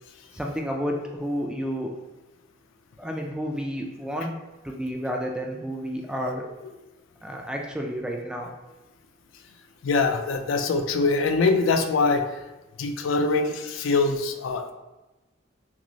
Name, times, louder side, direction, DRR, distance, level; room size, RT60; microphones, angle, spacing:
voice 1, 0.3-1.9 3.0-4.3 4.6-6.5 7.2-8.5, equal, 5° right, 1 dB, 0.3 m, -31 dB
voice 2, 9.8-12.2 12.8-14.7, left 3 dB, 80° left, 6 dB, 0.4 m, -23 dB
5.9 x 2.0 x 2.6 m, 1.1 s
head